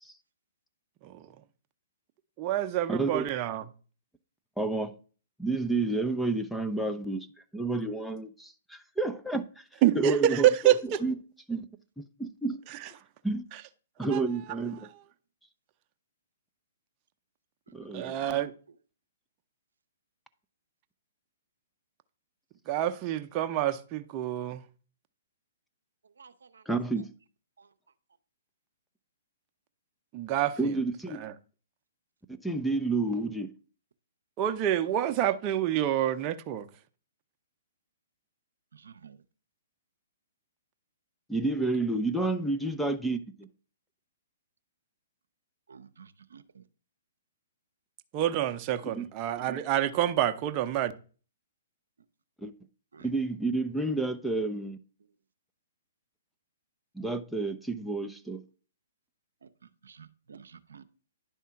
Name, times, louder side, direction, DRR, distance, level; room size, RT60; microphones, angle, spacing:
voice 1, 2.4-3.6 9.8-11.0 14.1-14.2 17.9-18.5 22.7-24.6 30.1-30.7 31.2-31.3 34.4-36.7 48.1-50.9, right 11 dB, 35° right, 0.7 m, -27 dB
voice 2, 2.9-3.3 4.6-4.9 5.4-7.3 7.5-9.6 9.9-11.1 11.5-11.7 12.0-12.6 13.2-13.5 14.0-14.9 17.7-18.1 26.7-27.1 30.6-31.2 32.3-33.5 41.3-43.5 48.9-49.0 52.4-52.5 53.0-54.8 57.0-58.4, right 3 dB, ahead, 0.5 m, -30 dB
voice 3, 26.2-26.6 38.8-39.2 45.7-46.6 52.9-53.0 59.4-59.5 59.8-60.8, right 6 dB, 85° right, 0.6 m, -52 dB
10.5 x 3.6 x 5.8 m
hypercardioid pair, 135°, 0 cm